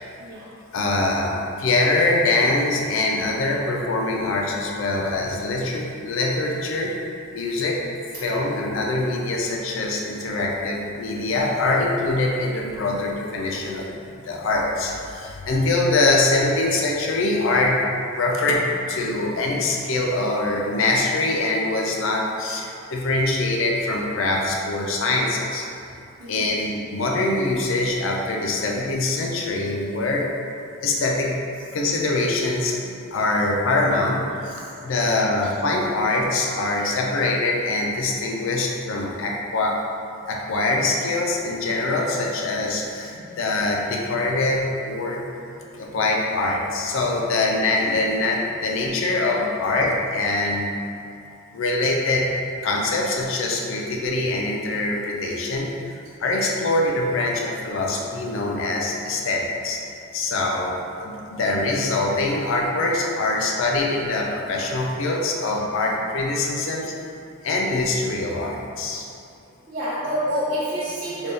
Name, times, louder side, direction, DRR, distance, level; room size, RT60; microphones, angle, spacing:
voice 1, 0.2-0.5 8.1-8.3 26.2-26.6 32.8-32.9 34.6-34.7 43.1-43.2 45.6-46.0 69.7-71.3, equal, 45° right, -11 dB, 0.6 m, -29 dB
voice 2, 0.7-6.9 7.3-7.8 8.2-13.9 14.2-17.8 18.0-25.7 26.3-30.3 30.8-31.3 31.7-32.8 33.1-39.8 40.3-45.2 45.8-50.6 51.5-52.3 52.6-59.8 60.1-66.9 67.4-69.0, left 2 dB, 65° left, -1 dB, 0.4 m, -23 dB
3.4 x 2.3 x 3.9 m, 2.6 s
head